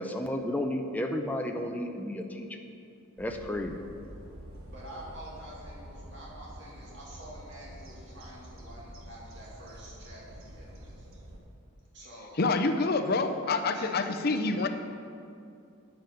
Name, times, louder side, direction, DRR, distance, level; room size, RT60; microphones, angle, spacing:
voice 1, 0.0-2.5 3.2-3.8, left 1 dB, 5° left, 3 dB, 0.5 m, -32 dB
sound 1, 3.2-11.4, equal, 75° right, 1.3 m, -47 dB
voice 2, 4.7-11.1 11.9-12.4 12.9-13.1 13.7-14.7, right 1 dB, 55° right, -6 dB, 2.3 m, -47 dB
voice 3, 12.4-14.7, left 3 dB, 45° left, 6 dB, 0.6 m, -27 dB
9.2 x 7.9 x 5.1 m, 2.5 s
head